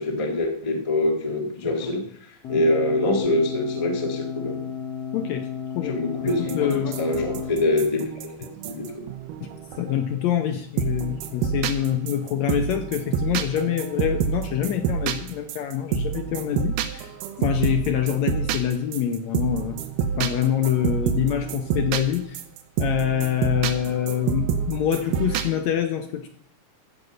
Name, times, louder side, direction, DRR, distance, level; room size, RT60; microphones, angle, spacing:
voice 1, 0.0-2.0 2.5-4.6 5.8-6.7 7.0-9.0, left 1 dB, 20° left, 2 dB, 0.8 m, -24 dB
sound 1, 2.4-7.5, left 8 dB, 55° left, 2.5 m, -33 dB
voice 2, 5.1-5.5 5.8-7.0 9.4-9.5 9.8-22.4 22.8-26.3, left 10 dB, 75° left, 7 dB, 1.7 m, -26 dB
sound 2, 6.3-10.2 10.8-25.5, right 8 dB, 80° right, 2.4 m, -28 dB
14.5 x 5.4 x 7.8 m, 0.63 s
omnidirectional pair, 3.8 m